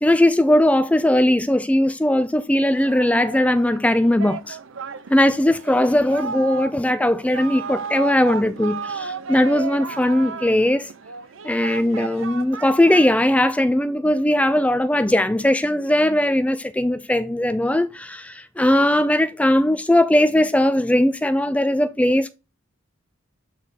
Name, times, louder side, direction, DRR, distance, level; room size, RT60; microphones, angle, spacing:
voice 1, 0.0-4.6 5.1-10.9 11.4-22.3, left 1 dB, 5° left, 0.4 m, -19 dB
Singing, 2.7-13.7, right 5 dB, 70° right, 0.6 m, -34 dB
8.4 x 3.7 x 4.1 m
head